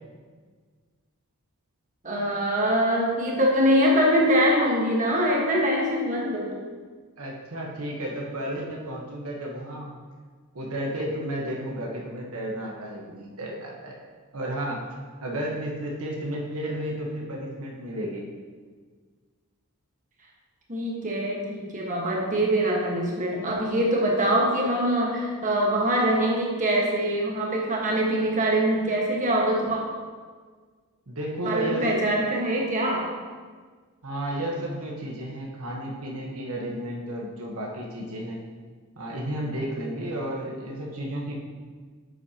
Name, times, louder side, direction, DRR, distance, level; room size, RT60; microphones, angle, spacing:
voice 1, 2.0-6.6 20.7-29.8 31.4-33.1, equal, 35° right, -2 dB, 1.4 m, -23 dB
voice 2, 7.2-10.0 10.5-13.9 14.3-14.9 15.2-18.3 31.1-31.9 34.0-38.4 39.0-41.4, right 1 dB, 70° right, -2 dB, 1.3 m, -32 dB
9.5 x 7.8 x 2.9 m, 1.5 s
head